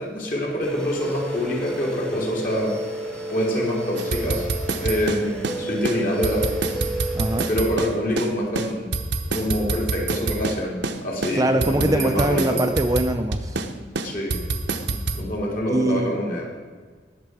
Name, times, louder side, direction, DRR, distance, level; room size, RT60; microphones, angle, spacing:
voice 1, 0.0-2.8 3.3-4.5 4.8-6.5 7.5-8.9 9.3-12.6 14.0-14.4 15.1-16.5, equal, 45° left, -2 dB, 3.2 m, -26 dB
sound 1, 0.6-7.5, right 1 dB, 5° left, 1.1 m, -32 dB
sound 2, 4.0-5.6 5.8-6.0 6.2-8.3 8.5-10.6 10.8-11.0 11.2-13.7 13.9-15.2, right 3 dB, 70° right, 0.9 m, -26 dB
voice 2, 7.1-7.5 11.3-13.6 15.7-16.2, right 1 dB, 20° right, 5 dB, 0.6 m, -22 dB
20.0 x 6.9 x 4.8 m, 1.5 s
head